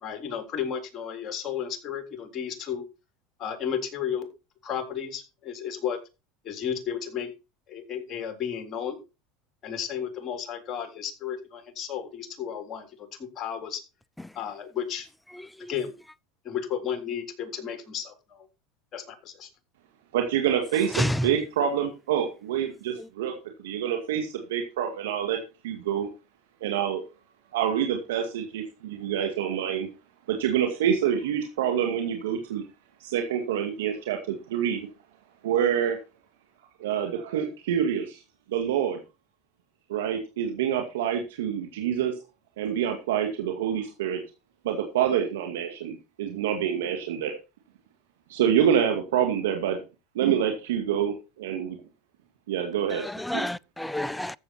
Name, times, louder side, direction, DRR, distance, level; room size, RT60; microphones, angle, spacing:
voice 1, 0.0-2.8 3.4-4.3 4.6-6.0 6.4-7.3 7.7-9.0 9.6-13.1 13.4-13.8 14.4-15.1 15.7-15.9 16.4-18.1 18.9-19.5, left 8 dB, 40° left, 3.7 m, -33 dB
voice 2, 20.1-23.3 23.6-25.4 25.6-26.1 26.6-27.0 27.5-29.9 30.3-32.6 33.0-34.9 35.4-36.0 36.8-38.2 38.5-39.0 39.9-42.1 42.6-44.2 44.6-47.3 48.3-49.8 50.1-51.8 52.5-53.0 53.3-53.4, right 9 dB, 85° right, 2.2 m, -26 dB
voice 3, 20.9-21.3 23.0-23.1 52.9-54.4, left 1 dB, 5° left, 0.5 m, -29 dB
14.0 x 7.5 x 4.4 m
supercardioid pair, 105°, 0 cm